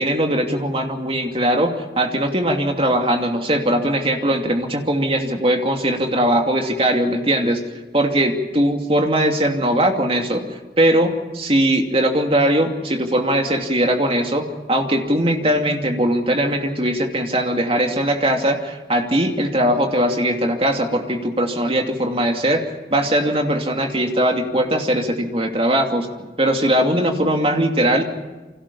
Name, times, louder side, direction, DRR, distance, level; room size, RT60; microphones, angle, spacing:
voice 1, 0.0-7.6 7.9-26.1 26.4-28.0, right 1 dB, 30° right, 3 dB, 2.7 m, -20 dB
29.5 x 25.0 x 5.6 m, 1.2 s
head